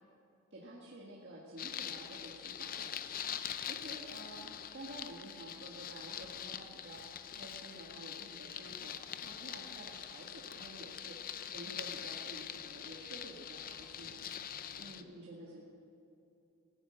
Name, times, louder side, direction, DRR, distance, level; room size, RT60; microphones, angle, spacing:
voice 1, 0.5-3.3 3.6-14.2 14.8-15.6, right 1 dB, 50° right, -4 dB, 1.8 m, -50 dB
sound 1, 1.6-15.0, left 9 dB, 40° left, 0.5 m, -44 dB
voice 2, 14.1-15.6, right 1 dB, 75° right, -3 dB, 3.7 m, -63 dB
15.0 x 10.0 x 7.9 m, 2.9 s
head